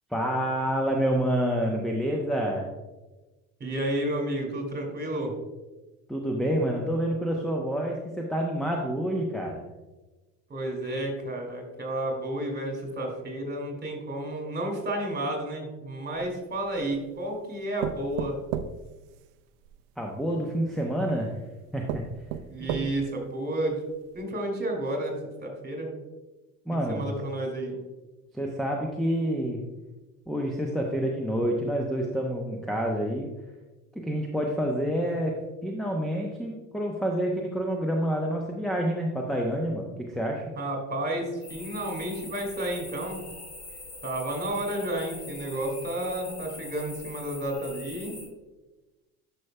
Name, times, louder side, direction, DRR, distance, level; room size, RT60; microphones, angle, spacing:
voice 1, 0.1-2.7 6.1-9.7 20.0-21.4 21.7-22.0 22.6-22.9 26.7-27.1 28.3-29.6 30.3-33.3 33.9-35.3 35.6-40.4, equal, ahead, 1 dB, 0.8 m, -28 dB
voice 2, 3.6-5.3 10.5-18.4 22.5-23.8 24.1-25.1 25.4-25.9 26.9-27.8 40.5-43.2 44.0-48.1, right 1 dB, 20° right, 1 dB, 2.4 m, -31 dB
sound 1, 16.1-17.0 17.8-19.8 20.8-20.9 21.4-21.5 21.9-23.2 23.7-23.8 24.1-24.2, right 10 dB, 60° right, 0.6 m, -35 dB
sound 2, 41.4-48.3, left 2 dB, 85° left, 1.8 m, -43 dB
10.5 x 5.8 x 2.2 m, 1.1 s
figure-of-eight pair, 60°, 45 cm